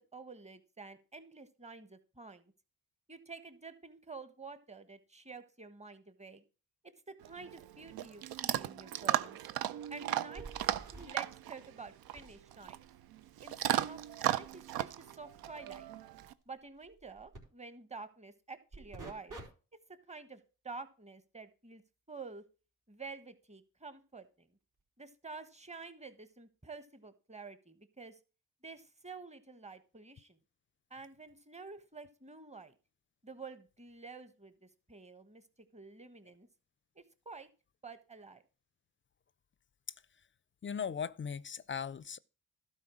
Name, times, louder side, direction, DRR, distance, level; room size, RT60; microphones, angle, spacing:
voice 1, 0.0-2.5 3.1-6.4 6.8-9.4 9.9-10.5 10.9-12.8 13.4-15.9 16.5-19.4 20.1-21.8 22.1-22.4 22.9-24.5 25.0-28.2 28.6-30.4 30.9-32.7 33.2-35.4 35.7-36.5 36.9-37.5 37.8-38.4, right 4 dB, 20° right, 1.3 m, -49 dB
Chewing mastication / Dog, 7.2-16.3, right 12 dB, 85° right, 0.5 m, -36 dB
sound 1, 10.3-11.1 12.1-17.4 18.7-19.4 19.9-20.2 24.8-24.9 25.8-25.9, right 2 dB, 60° right, 3.7 m, -52 dB
voice 2, 40.6-42.2, left 7 dB, 35° left, 0.4 m, -38 dB
12.0 x 4.3 x 6.2 m
supercardioid pair, 55°, 36 cm